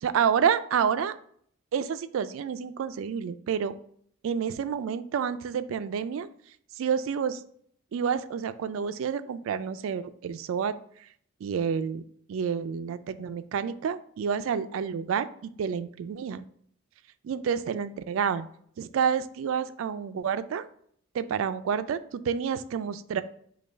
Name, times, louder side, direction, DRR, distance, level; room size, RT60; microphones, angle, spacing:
voice 1, 0.0-1.1 1.7-3.7 4.2-6.3 6.8-7.4 7.9-10.8 11.4-12.0 12.3-16.5 17.2-18.5 18.8-20.7 21.1-23.2, right 7 dB, 75° right, 13 dB, 0.3 m, -29 dB
5.2 x 2.3 x 4.4 m, 0.62 s
head